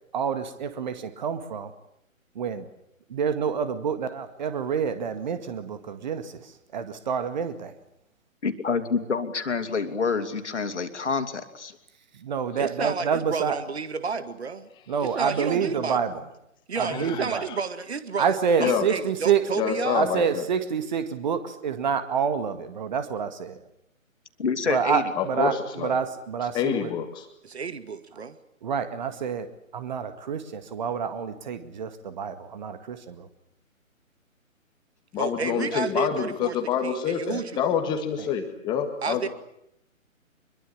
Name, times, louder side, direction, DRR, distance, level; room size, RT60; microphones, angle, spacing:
voice 1, 0.1-1.7 2.4-2.6 3.1-6.4 6.7-7.7 12.2-13.6 14.9-16.3 16.8-17.5 18.2-19.5 19.9-23.6 24.7-26.9 28.6-29.5 29.7-33.3 38.2-38.3, right 6 dB, 35° right, 11 dB, 2.0 m, -27 dB
voice 2, 8.4-11.7 24.4-25.0, left 5 dB, 55° left, 7 dB, 3.1 m, -27 dB
voice 3, 12.6-14.7 15.2-16.0 16.7-18.2 18.6-20.0 27.4-28.3 35.2-36.6 36.8-37.7 39.0-39.3, right 5 dB, 50° right, 12 dB, 2.1 m, -31 dB
voice 4, 16.8-17.6 18.6-18.8 19.5-20.5 25.2-26.0 26.5-27.3 35.1-39.3, left 8 dB, 10° left, 7 dB, 1.8 m, -27 dB
25.0 x 22.5 x 8.8 m, 0.77 s
figure-of-eight pair, 135°, 41 cm